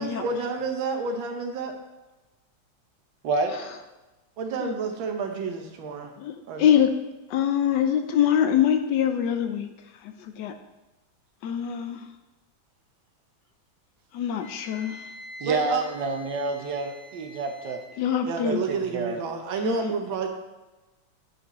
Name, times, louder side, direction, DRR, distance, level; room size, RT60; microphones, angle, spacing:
voice 1, 0.0-1.7 4.4-6.1 6.5-6.7 15.4-15.8 18.3-20.3, right 4 dB, 85° right, 4 dB, 1.8 m, -30 dB
voice 2, 3.2-3.6 15.4-17.8 18.4-19.2, right 3 dB, 65° right, 4 dB, 1.5 m, -28 dB
voice 3, 6.2-6.9 7.3-9.7 10.0-10.6 11.4-12.1 14.1-15.1 18.0-18.6 19.6-19.9, left 9 dB, 75° left, 7 dB, 1.1 m, -24 dB
Wind instrument woodwind instrument, 14.4-17.9, left 2 dB, 40° right, 1.6 m, -46 dB
8.7 x 5.9 x 4.1 m, 1.1 s
omnidirectional pair, 2.1 m